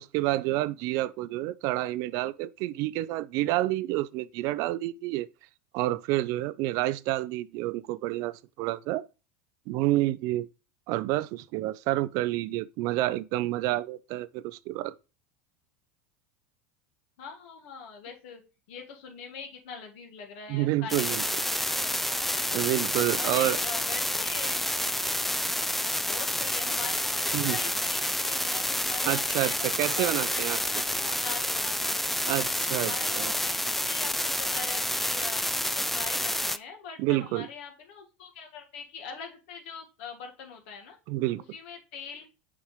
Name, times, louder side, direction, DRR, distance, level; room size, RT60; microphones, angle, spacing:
voice 1, 0.0-5.3 5.7-9.0 9.7-10.5 10.9-14.9 20.5-21.2 22.5-23.6 27.3-27.6 29.1-30.6 32.3-33.3 37.0-37.5 41.1-41.4, right 16 dB, 55° right, 0.5 m, -29 dB
voice 2, 17.2-18.4 18.7-21.2 21.6-22.7 23.2-24.9 26.1-32.2 32.8-35.4 35.9-41.0 41.5-42.3, left 5 dB, 70° left, 1.6 m, -42 dB
sound 1, 20.9-36.6, left 1 dB, 5° left, 0.4 m, -29 dB
6.7 x 5.1 x 3.1 m
hypercardioid pair, 105°, 7 cm